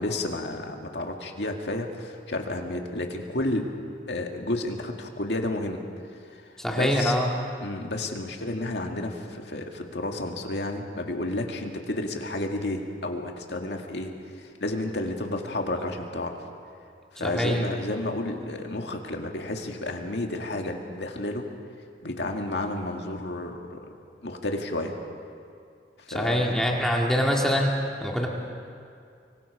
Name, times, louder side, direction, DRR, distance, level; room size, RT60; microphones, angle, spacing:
voice 1, 0.0-3.7 4.1-5.8 6.3-6.4 6.7-7.2 7.6-14.1 14.4-16.4 17.1-21.4 22.0-23.9 24.2-25.0 26.1-26.6, left 2 dB, 75° left, 3 dB, 2.0 m, -31 dB
voice 2, 6.6-7.3 17.2-17.6 26.1-27.7 28.0-28.3, equal, 5° left, -1 dB, 2.0 m, -24 dB
25.0 x 24.0 x 4.9 m, 2.4 s
head